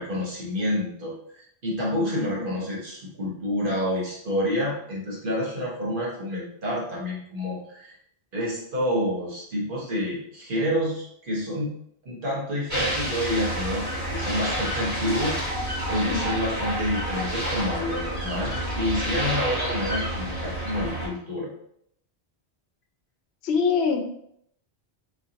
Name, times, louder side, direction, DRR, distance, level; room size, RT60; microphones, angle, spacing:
voice 1, 0.0-8.0 8.3-11.8 12.0-21.5, equal, 55° right, -4 dB, 1.2 m, -28 dB
sound 1, 12.7-21.1, equal, 35° right, 1.5 m, -29 dB
voice 2, 16.1-16.4 23.4-24.0, left 5 dB, 80° left, 5 dB, 0.9 m, -25 dB
3.7 x 3.1 x 2.8 m, 0.70 s
omnidirectional pair, 1.1 m